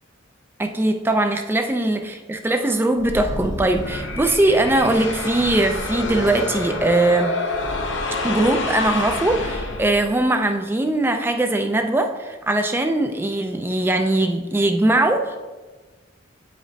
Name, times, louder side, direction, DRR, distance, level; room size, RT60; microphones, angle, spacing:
voice 1, 0.6-7.4 8.2-15.4, right 2 dB, 10° right, 5 dB, 0.3 m, -20 dB
sound 1, 3.0-10.2, left 2 dB, 65° left, 0.6 m, -28 dB
8.4 x 5.0 x 2.7 m, 1.3 s
head